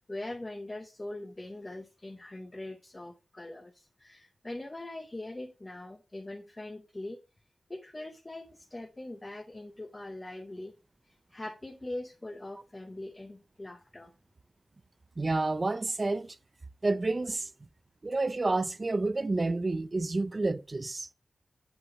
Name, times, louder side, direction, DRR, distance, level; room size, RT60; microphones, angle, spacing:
voice 1, 0.0-7.2 7.7-10.7 11.0-14.1, left 1 dB, 20° left, 0.8 m, -42 dB
voice 2, 15.2-16.4 16.8-17.5 18.0-21.1, right 2 dB, 25° right, 0.5 m, -29 dB
8.0 x 7.9 x 3.9 m
wide cardioid pair, 150°, 0 cm